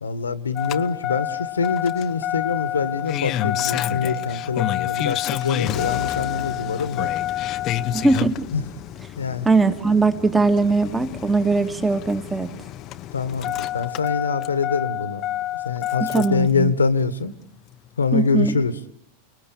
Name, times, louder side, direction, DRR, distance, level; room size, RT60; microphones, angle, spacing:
voice 1, 0.0-7.1 8.5-8.6 9.2-9.5 13.1-15.2 15.7-17.3 18.0-18.7, left 5 dB, 85° left, 14 dB, 1.7 m, -24 dB
Engine starting, 0.6-16.5 17.7-17.8, left 13 dB, 40° left, 0.9 m, -28 dB
voice 2, 7.9-8.5 9.4-12.5 16.0-16.7 18.1-18.5, right 3 dB, 10° right, 8 dB, 2.1 m, -20 dB
30.0 x 19.5 x 8.7 m, 0.74 s
figure-of-eight pair, 95°, 0 cm